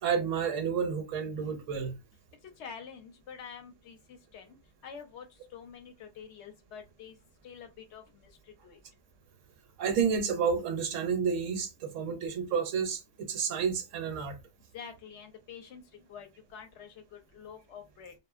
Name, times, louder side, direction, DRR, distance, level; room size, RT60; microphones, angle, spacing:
voice 1, 0.0-1.9 9.8-14.4, right 6 dB, 80° right, 1.0 m, -30 dB
voice 2, 2.6-4.6 4.8-7.2 7.4-8.8 14.7-15.8 16.1-18.1, left 7 dB, 65° left, 0.8 m, -47 dB
2.7 x 2.3 x 2.4 m
omnidirectional pair, 1.3 m